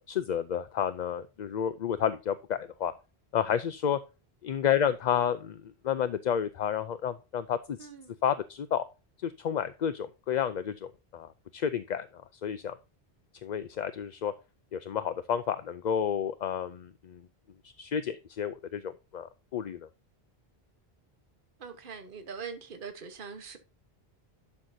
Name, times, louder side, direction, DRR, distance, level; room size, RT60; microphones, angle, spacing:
voice 1, 0.0-2.9 3.3-4.0 4.4-7.9 8.2-8.8 9.2-12.8 13.4-14.3 14.7-17.2 17.6-19.9, left 8 dB, 50° left, 0.6 m, -31 dB
voice 2, 7.8-8.2 21.6-23.6, right 6 dB, 55° right, 1.4 m, -42 dB
11.5 x 6.5 x 2.7 m
omnidirectional pair, 1.1 m